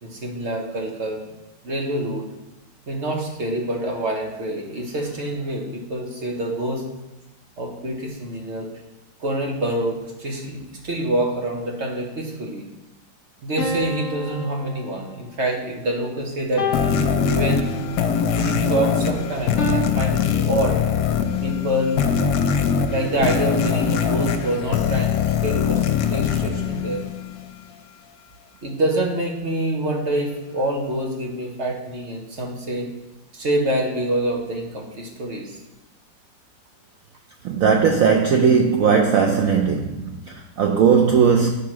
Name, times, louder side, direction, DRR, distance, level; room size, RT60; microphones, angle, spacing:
voice 1, 0.0-1.2 1.6-2.2 2.9-6.8 7.6-8.7 9.2-12.6 13.4-16.7 17.3-17.9 18.4-20.8 21.4-22.0 22.4-22.5 22.9-25.1 25.4-27.0 28.6-32.9 33.3-35.5, right 1 dB, 45° right, 1.3 m, -26 dB
sound 1, 13.6-15.3 16.6-18.0 19.6-19.8, left 2 dB, 55° left, 1.3 m, -29 dB
sound 2, 16.7-27.5, left 7 dB, 70° left, 0.9 m, -22 dB
voice 2, 37.4-41.5, right 6 dB, 75° right, 0.7 m, -18 dB
8.0 x 3.7 x 5.9 m
omnidirectional pair, 2.0 m